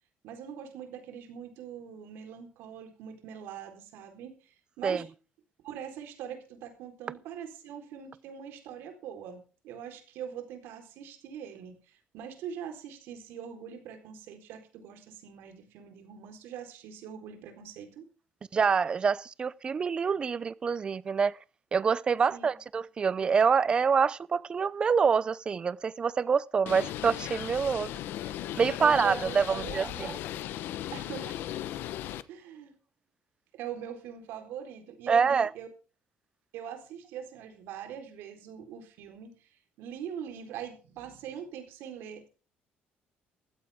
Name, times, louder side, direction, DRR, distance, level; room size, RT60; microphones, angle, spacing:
voice 1, 0.2-5.1 5.6-18.1 22.3-22.5 28.8-30.2 30.9-31.3 32.3-32.7 33.5-35.7 36.5-42.3, right 8 dB, 85° right, 4.1 m, -42 dB
voice 2, 18.5-21.4 21.7-27.9 28.6-30.1 35.1-35.5, right 6 dB, 25° right, 0.5 m, -26 dB
Bird, 26.7-32.2, left 12 dB, 70° left, 1.0 m, -37 dB
15.5 x 14.0 x 3.6 m
cardioid pair, 165°, 4 cm